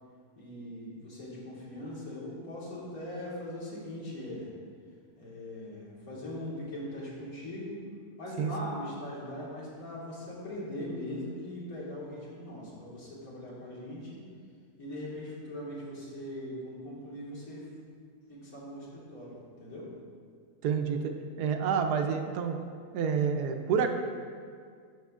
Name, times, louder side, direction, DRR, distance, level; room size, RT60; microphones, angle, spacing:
voice 1, 0.4-4.5 5.2-7.8 8.2-14.2 14.8-17.7 18.3-19.9, left 1 dB, 65° left, -6 dB, 2.1 m, -40 dB
voice 2, 20.6-21.1 21.4-22.6 22.9-23.9, right 6 dB, 85° right, 5 dB, 1.2 m, -28 dB
10.0 x 6.3 x 2.4 m, 2.1 s
omnidirectional pair, 1.7 m